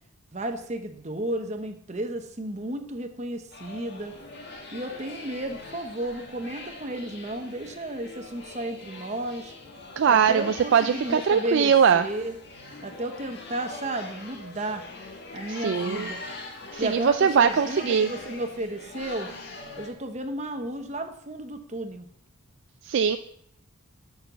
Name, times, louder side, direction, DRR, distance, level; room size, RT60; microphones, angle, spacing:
voice 1, 0.3-4.1 4.7-9.5 10.0-12.3 12.8-14.8 15.3-16.2 16.8-19.3 19.8-22.1, right 1 dB, 30° right, 6 dB, 0.9 m, -33 dB
sound 1, 3.5-19.9, left 3 dB, 50° left, 1.7 m, -42 dB
voice 2, 10.0-12.0 15.5-16.1 16.7-18.1 22.8-23.2, right 7 dB, 55° right, 9 dB, 0.3 m, -21 dB
6.5 x 6.1 x 6.8 m, 0.67 s
head